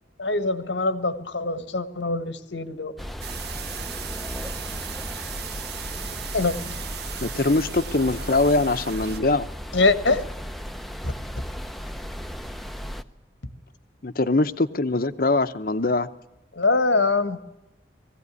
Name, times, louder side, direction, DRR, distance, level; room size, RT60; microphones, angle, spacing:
voice 1, 0.2-2.9 6.3-6.8 9.7-10.3 11.0-11.1 16.5-17.4, left 3 dB, 85° left, 11 dB, 1.5 m, -23 dB
sound 1, 3.0-13.0, equal, ahead, 0.7 m, -35 dB
sound 2, 3.2-9.2, right 8 dB, 60° right, 1.1 m, -37 dB
voice 2, 7.2-9.5 14.0-16.1, left 2 dB, 50° left, 11 dB, 0.9 m, -22 dB
20.5 x 16.0 x 9.7 m, 0.98 s
head